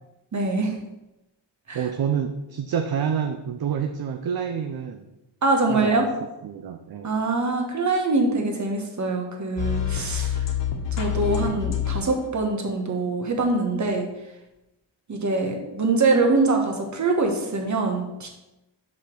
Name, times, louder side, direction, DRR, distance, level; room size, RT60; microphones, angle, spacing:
voice 1, 0.3-0.8 1.7-1.8 5.4-6.1 7.0-10.4 10.9-14.1 15.1-18.3, right 3 dB, 40° right, 2 dB, 1.3 m, -24 dB
voice 2, 1.7-5.1 5.7-6.1 6.4-7.1, right 7 dB, 55° right, 6 dB, 0.6 m, -28 dB
sound 1, 9.6-12.3, left 10 dB, 70° left, 1.3 m, -26 dB
5.7 x 5.1 x 5.9 m, 0.96 s
wide cardioid pair, 155°, 45 cm